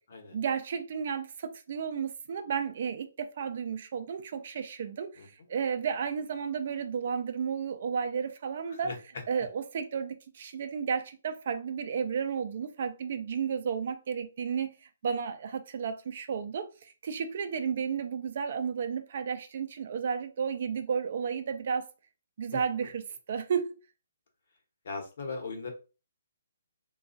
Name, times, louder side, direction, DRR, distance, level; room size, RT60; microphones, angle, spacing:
voice 1, 0.3-5.2 5.5-8.9 9.3-14.7 15.0-16.7 17.0-21.9 22.4-23.0 23.3-23.8, right 6 dB, 50° right, 0.4 m, -32 dB
voice 2, 8.7-9.2 22.5-22.6 24.8-25.7, left 4 dB, 60° left, 1.0 m, -39 dB
3.1 x 2.3 x 2.6 m
hypercardioid pair, 155°, 0 cm